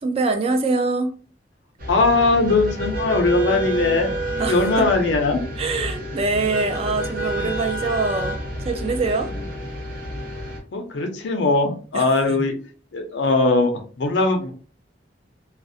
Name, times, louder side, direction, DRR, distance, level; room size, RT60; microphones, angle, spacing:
voice 1, 0.0-1.1 4.4-4.9 5.6-8.4 8.6-9.3 11.9-12.4, right 3 dB, 35° right, 0.3 m, -24 dB
sound 1, 1.8-10.6, right 1 dB, 50° right, 0.7 m, -29 dB
voice 2, 1.9-4.1 4.5-5.4 10.7-12.5 12.9-13.7 14.0-14.5, left 3 dB, 85° left, 0.5 m, -20 dB
2.4 x 2.0 x 2.6 m
head